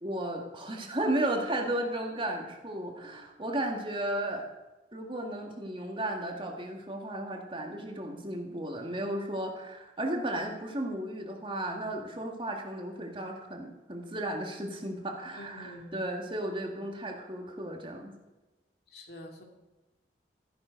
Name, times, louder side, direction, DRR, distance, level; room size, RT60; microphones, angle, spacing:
voice 1, 0.0-4.5 4.9-18.1, right 1 dB, 30° right, 2 dB, 1.9 m, -34 dB
voice 2, 15.3-16.0 18.9-19.4, left 1 dB, 65° left, 2 dB, 2.6 m, -46 dB
14.5 x 11.0 x 5.2 m, 1.1 s
head